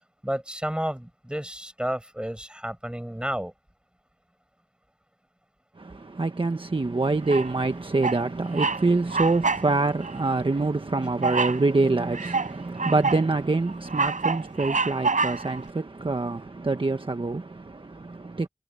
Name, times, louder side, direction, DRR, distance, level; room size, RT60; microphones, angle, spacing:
voice 1, 0.2-3.5, equal, 5° right, 6.6 m, -31 dB
voice 2, 5.8-18.5, right 3 dB, 45° right, 1.3 m, -25 dB
Bird vocalization bird call bird song, 7.3-7.7 8.0-8.3 8.5-8.8 9.1-9.7 10.0-10.2 11.2-11.6 12.1-13.3 13.7-15.6, right 4 dB, 90° right, 7.0 m, -27 dB
wide cardioid pair, 70°, 13 cm